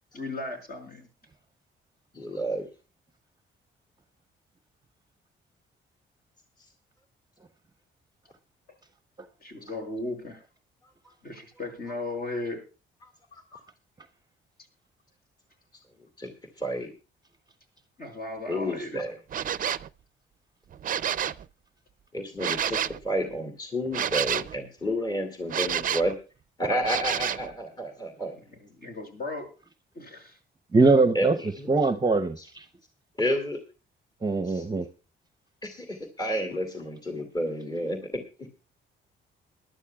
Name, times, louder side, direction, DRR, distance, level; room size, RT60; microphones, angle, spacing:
voice 1, 0.1-1.1 9.4-10.4 11.2-12.6 18.0-19.1 28.3-29.5 30.0-30.4, left 2 dB, 50° left, 5.6 m, -36 dB
voice 2, 2.1-2.7 13.3-13.6 16.2-16.3 16.6-16.9 18.5-19.1 22.1-22.8 23.0-26.1 26.6-28.3 31.1-31.7 32.4-32.5 33.2-33.6 34.5-34.6 35.6-38.5, equal, 20° left, 2.3 m, -30 dB
sound 1, 19.3-19.9 20.7-21.4 22.4-23.0 23.9-24.6 25.5-26.1 26.8-27.5, right 9 dB, 45° right, 0.5 m, -29 dB
voice 3, 30.7-31.4 31.7-32.6 34.2-34.9, right 3 dB, 20° right, 0.8 m, -22 dB
21.5 x 12.0 x 2.3 m
cardioid pair, 90°, 20 cm